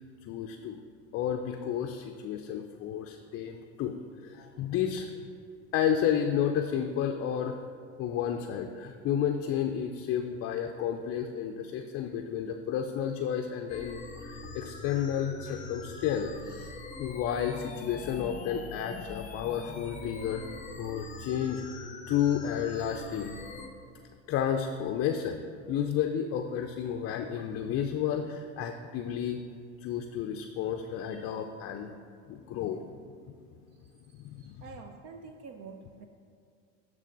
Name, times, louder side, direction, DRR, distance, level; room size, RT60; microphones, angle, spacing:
voice 1, 0.3-0.8 1.1-3.9 4.2-5.1 5.7-7.5 8.0-16.7 17.0-20.5 20.8-21.6 22.1-23.3 24.3-25.4 25.7-29.4 29.8-31.9 32.3-32.8 33.3-33.4 34.2-34.6, left 9 dB, 40° left, 4 dB, 0.5 m, -31 dB
sound 1, 13.7-23.7, left 3 dB, 20° left, 0.9 m, -43 dB
voice 2, 34.4-36.1, right 4 dB, 45° right, 5 dB, 0.6 m, -47 dB
10.0 x 3.4 x 5.2 m, 2.4 s
supercardioid pair, 95°, 37 cm